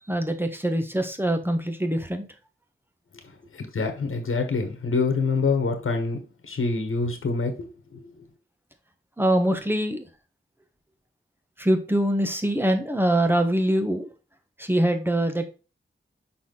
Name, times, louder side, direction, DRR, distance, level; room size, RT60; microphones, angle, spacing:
voice 1, 0.1-2.2 9.2-10.1 11.6-14.1 14.6-15.4, right 1 dB, 10° right, 1.2 m, -23 dB
voice 2, 3.5-7.6 7.9-8.2, left 4 dB, 85° left, 1.2 m, -26 dB
5.8 x 4.2 x 3.9 m
wide cardioid pair, 60°, 21 cm